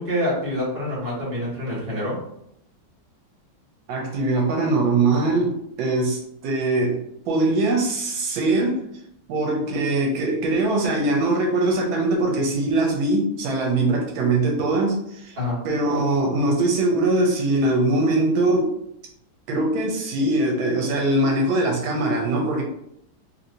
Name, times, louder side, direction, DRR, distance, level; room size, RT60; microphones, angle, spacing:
voice 1, 0.0-2.2 15.4-15.6, left 1 dB, 30° right, -7 dB, 1.4 m, -26 dB
voice 2, 3.9-8.8 9.3-15.4 15.6-18.7 19.5-22.6, right 2 dB, 85° right, 0 dB, 1.5 m, -22 dB
3.1 x 2.8 x 2.6 m, 0.75 s
omnidirectional pair, 2.1 m